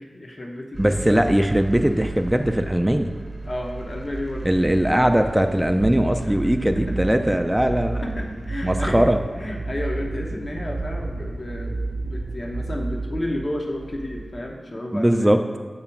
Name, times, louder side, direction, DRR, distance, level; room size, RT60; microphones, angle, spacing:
voice 1, 0.0-1.2 3.4-4.5 6.2-7.0 7.2-7.8 8.0-9.1 9.4-15.4, left 1 dB, 45° left, 1 dB, 0.7 m, -32 dB
sound 1, 0.7-14.5, right 2 dB, 30° right, 0.7 m, -38 dB
voice 2, 0.8-3.1 4.4-8.0 8.6-9.2 14.9-15.4, right 1 dB, 10° right, 6 dB, 0.3 m, -20 dB
sound 2, 5.8-13.2, right 2 dB, 75° right, 0.5 m, -30 dB
7.1 x 2.9 x 5.7 m, 1.4 s
cardioid pair, 50°, 0 cm